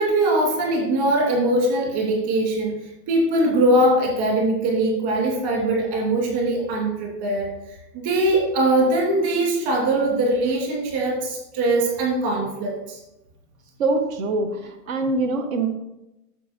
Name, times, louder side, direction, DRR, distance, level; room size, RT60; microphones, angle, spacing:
voice 1, 0.0-2.8 3.1-7.5 7.9-13.0, right 1 dB, 25° right, -1 dB, 2.7 m, -21 dB
voice 2, 13.8-15.7, right 3 dB, 55° right, 6 dB, 1.6 m, -24 dB
9.9 x 7.1 x 4.5 m, 0.92 s
supercardioid pair, 175°, 49 cm